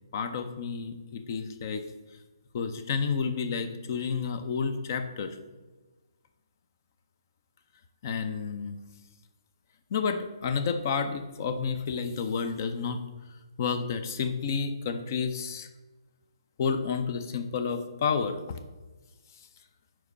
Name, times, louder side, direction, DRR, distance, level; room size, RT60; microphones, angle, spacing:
voice 1, 0.1-1.9 2.5-5.4 8.0-8.8 9.9-13.0 13.6-15.7 16.6-18.6, left 5 dB, 40° left, 9 dB, 0.5 m, -30 dB
4.7 x 4.4 x 5.2 m, 1.2 s
hypercardioid pair, 150°, 3 cm